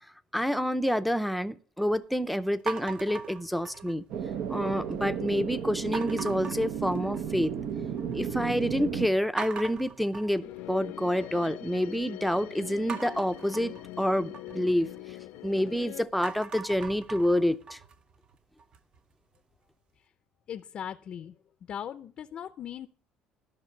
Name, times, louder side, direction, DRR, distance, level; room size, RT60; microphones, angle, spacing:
voice 1, 0.3-4.0 4.5-7.5 8.1-14.9 15.4-17.8, equal, ahead, 0.6 m, -28 dB
sound 1, 2.7-4.1 4.5-5.1 5.9-7.5 7.8-8.4 8.7-8.8 9.4-11.5 12.9-15.7 16.1-19.0, right 5 dB, 40° right, 0.8 m, -41 dB
sound 2, 4.1-9.1, right 7 dB, 75° right, 1.0 m, -33 dB
sound 3, 10.4-16.0, left 16 dB, 90° left, 0.7 m, -43 dB
voice 2, 20.5-21.4 21.7-22.9, left 9 dB, 50° left, 0.6 m, -38 dB
12.5 x 5.9 x 6.5 m
cardioid pair, 125°, 2 cm